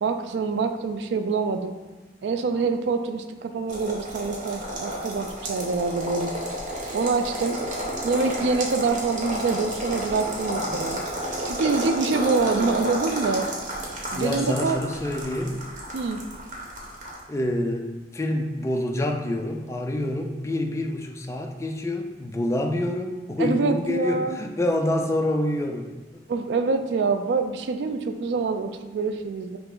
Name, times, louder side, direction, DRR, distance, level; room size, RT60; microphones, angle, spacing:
voice 1, 0.0-1.7 2.2-6.3 6.9-7.6 8.0-11.0 11.5-13.5 14.1-14.8 15.9-16.2 23.4-24.4 26.3-29.6, right 4 dB, 80° right, 8 dB, 0.4 m, -25 dB
sound 1, 3.7-17.2, right 1 dB, 45° right, 0.9 m, -31 dB
voice 2, 14.1-15.6 17.3-25.9 26.1-26.2, left 1 dB, 15° left, 3 dB, 0.3 m, -27 dB
5.6 x 2.0 x 3.7 m, 1.2 s
head